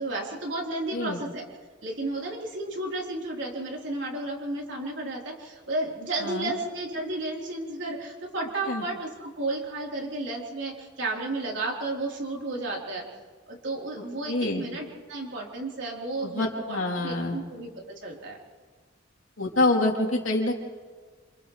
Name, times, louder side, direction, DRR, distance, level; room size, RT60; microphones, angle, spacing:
voice 1, 0.0-1.4 1.8-13.0 13.5-16.8 17.0-18.4, right 2 dB, 65° right, -2 dB, 4.0 m, -33 dB
voice 2, 0.9-1.2 6.2-6.5 8.7-8.8 14.3-14.6 16.2-17.4 19.4-20.6, left 2 dB, 85° left, -1 dB, 3.4 m, -26 dB
28.0 x 28.0 x 3.3 m, 1.5 s
head